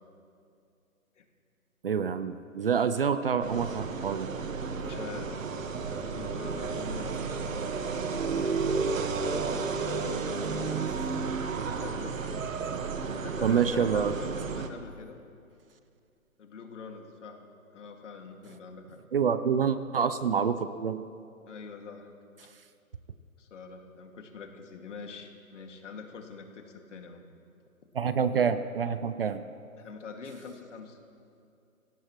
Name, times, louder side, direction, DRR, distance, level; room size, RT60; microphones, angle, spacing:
voice 1, 1.8-4.3 13.4-14.1 19.1-21.0 27.9-29.4, right 7 dB, 40° right, 12 dB, 0.6 m, -27 dB
sound 1, 3.4-14.7, right 4 dB, 65° right, 1.5 m, -32 dB
voice 2, 4.8-5.7 6.1-7.4 11.6-12.3 13.2-15.2 16.4-17.5 17.7-19.0 21.5-22.1 23.4-27.2 29.7-31.0, left 5 dB, 55° left, 3 dB, 2.3 m, -44 dB
26.0 x 17.0 x 3.1 m, 2.4 s
hypercardioid pair, 150°, 43 cm